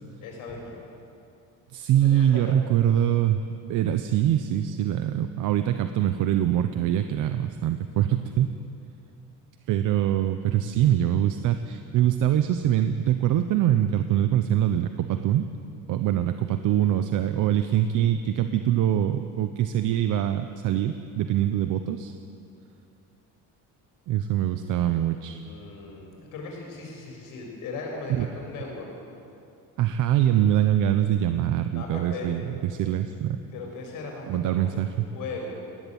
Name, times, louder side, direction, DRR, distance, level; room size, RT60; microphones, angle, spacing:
voice 1, 0.2-0.7 1.9-2.5 25.2-29.0 31.7-32.3 33.5-34.6 34.9-35.5, left 3 dB, 70° left, 0 dB, 7.2 m, -38 dB
voice 2, 1.7-3.4 3.7-8.5 9.7-15.5 15.9-22.1 24.1-25.4 28.1-28.3 29.8-33.4 34.3-35.0, right 11 dB, 65° right, 9 dB, 1.0 m, -24 dB
20.5 x 17.5 x 9.3 m, 2.6 s
cardioid pair, 145°, 34 cm